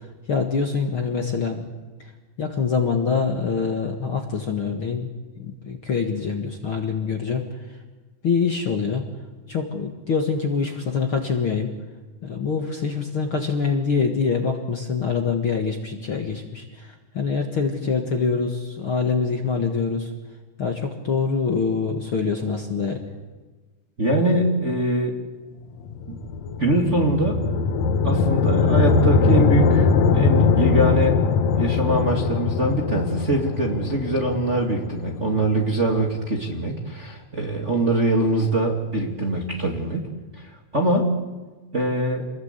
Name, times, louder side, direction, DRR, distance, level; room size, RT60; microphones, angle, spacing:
voice 1, 0.3-1.6 2.4-5.1 5.4-7.4 8.2-9.0 9.5-11.7 12.2-16.9 17.1-20.1 20.6-23.0, left 5 dB, 45° left, 3 dB, 2.0 m, -25 dB
voice 2, 24.0-25.1 26.1-26.2 26.6-27.5 28.0-29.9 30.1-31.2 31.5-40.1 40.7-41.2 41.7-42.2, right 1 dB, 25° right, 0 dB, 2.1 m, -23 dB
sound 1, 25.8-36.1, left 5 dB, 65° left, 2.0 m, -21 dB
27.5 x 21.0 x 8.3 m, 1.3 s
omnidirectional pair, 4.0 m